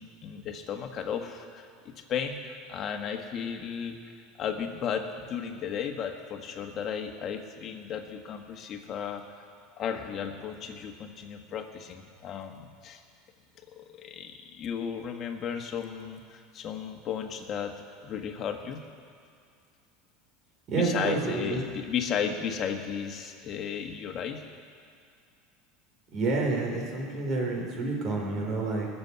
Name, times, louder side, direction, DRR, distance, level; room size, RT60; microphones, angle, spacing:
voice 1, 0.0-1.7 2.1-9.2 9.8-13.0 13.7-17.7 18.0-18.8 20.7-24.4, left 7 dB, 40° left, 4 dB, 1.6 m, -34 dB
voice 2, 20.7-21.6 26.1-28.9, right 3 dB, 45° right, 0 dB, 4.2 m, -29 dB
20.0 x 7.1 x 8.2 m, 2.3 s
supercardioid pair, 115°, 0 cm